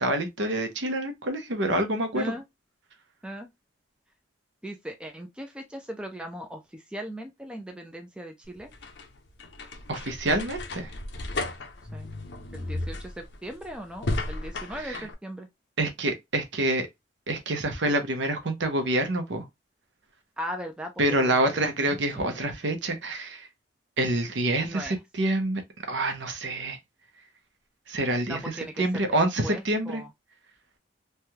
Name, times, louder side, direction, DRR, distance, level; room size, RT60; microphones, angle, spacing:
voice 1, 0.0-2.3 9.9-10.9 14.8-15.1 15.8-16.9 17.3-19.4 21.0-23.5 24.0-25.6 25.9-26.8 27.9-28.4 28.8-30.0, right 1 dB, 70° right, 0.8 m, -27 dB
voice 2, 2.1-2.4 3.2-3.5 4.6-8.7 11.9-12.1 12.5-15.5 20.4-21.4 21.8-22.3 24.6-25.0 28.3-30.1, equal, 5° right, 0.4 m, -38 dB
sound 1, 8.4-15.1, left 2 dB, 65° left, 0.6 m, -35 dB
3.3 x 2.3 x 2.8 m
head